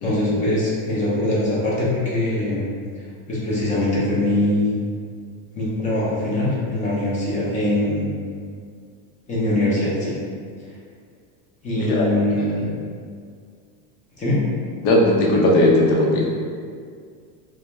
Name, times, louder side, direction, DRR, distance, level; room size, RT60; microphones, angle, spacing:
voice 1, 0.0-2.7 3.0-4.8 5.5-8.2 9.3-10.1 11.6-12.6 14.2-14.4, left 1 dB, 20° left, -7 dB, 0.4 m, -22 dB
voice 2, 14.8-16.2, left 1 dB, 75° left, -2 dB, 0.7 m, -18 dB
2.2 x 2.1 x 2.9 m, 2.1 s
supercardioid pair, 135°, 44 cm